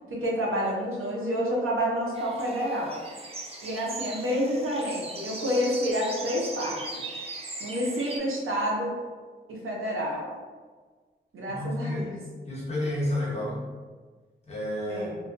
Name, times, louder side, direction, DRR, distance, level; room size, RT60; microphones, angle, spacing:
voice 1, 0.1-3.0 3.6-7.0 7.6-8.9 9.5-10.3 11.3-12.2 14.9-15.2, equal, 85° right, -3 dB, 0.7 m, -29 dB
sound 1, 2.1-8.2, right 2 dB, 30° right, 0.4 m, -39 dB
voice 2, 11.5-12.1 12.5-13.6 14.5-15.1, left 1 dB, 30° left, -6 dB, 0.9 m, -30 dB
2.4 x 2.1 x 2.5 m, 1.4 s
wide cardioid pair, 75°, 21 cm